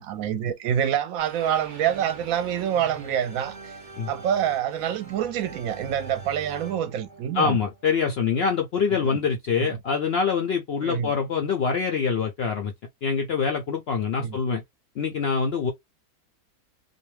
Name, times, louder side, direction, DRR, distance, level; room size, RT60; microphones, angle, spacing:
voice 1, 0.0-3.8 4.1-7.6 8.9-9.2 9.6-9.7 10.8-11.1 14.2-14.4, right 9 dB, 70° right, 0.9 m, -27 dB
sound 1, 1.2-8.2, right 4 dB, 40° right, 0.8 m, -43 dB
voice 2, 7.3-12.7 13.0-14.6 15.0-15.7, left 5 dB, 70° left, 0.6 m, -25 dB
2.6 x 2.1 x 3.1 m
omnidirectional pair, 1.6 m